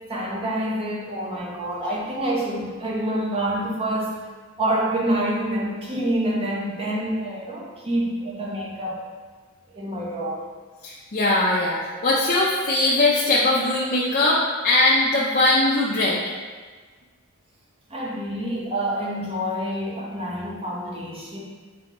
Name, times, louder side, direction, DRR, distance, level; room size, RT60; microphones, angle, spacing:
voice 1, 0.1-4.1 4.6-9.0 9.7-10.4 17.9-21.4, right 1 dB, 25° right, -3 dB, 0.8 m, -27 dB
voice 2, 10.8-16.2, left 2 dB, 40° left, -6 dB, 0.5 m, -20 dB
5.3 x 3.4 x 2.9 m, 1.4 s
head